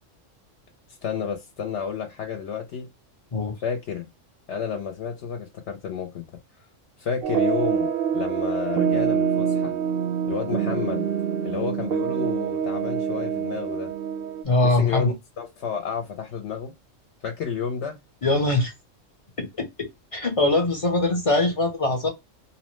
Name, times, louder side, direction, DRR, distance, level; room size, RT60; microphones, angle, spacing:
voice 1, 0.9-2.9 3.6-4.1 4.5-6.2 7.0-9.8 10.3-11.1 11.4-13.9 14.6-16.7 17.2-18.0, left 7 dB, 70° left, 0.8 m, -31 dB
sound 1, 7.2-14.4, right 7 dB, 60° right, 0.6 m, -25 dB
voice 2, 14.4-15.1 18.2-18.7 19.4-22.1, left 2 dB, 40° left, 0.5 m, -22 dB
2.8 x 2.0 x 3.0 m
omnidirectional pair, 1.3 m